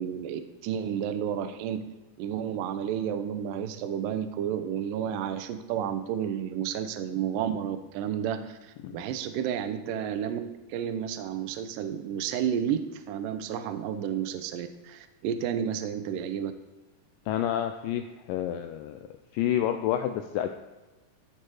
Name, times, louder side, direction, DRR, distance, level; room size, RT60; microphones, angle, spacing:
voice 1, 0.0-1.8 2.2-10.4 10.7-16.5, right 9 dB, 75° right, 10 dB, 2.1 m, -31 dB
voice 2, 17.3-19.0 19.3-20.5, left 11 dB, 90° left, 7 dB, 1.9 m, -29 dB
13.5 x 4.4 x 4.8 m, 1.2 s
omnidirectional pair, 4.5 m